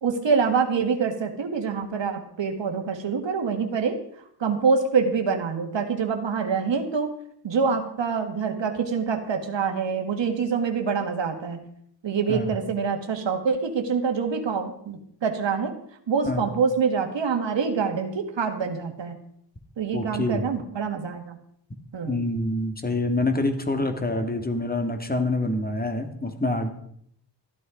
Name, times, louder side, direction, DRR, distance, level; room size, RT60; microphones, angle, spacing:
voice 1, 0.0-4.0 4.4-7.1 7.4-11.6 12.0-15.7 16.1-19.2 19.8-21.4 21.9-22.2, right 5 dB, 75° right, 5 dB, 1.9 m, -25 dB
voice 2, 19.9-20.5 22.1-26.7, left 2 dB, 20° left, 6 dB, 2.0 m, -26 dB
14.0 x 11.5 x 5.1 m, 0.69 s
wide cardioid pair, 110°, 44 cm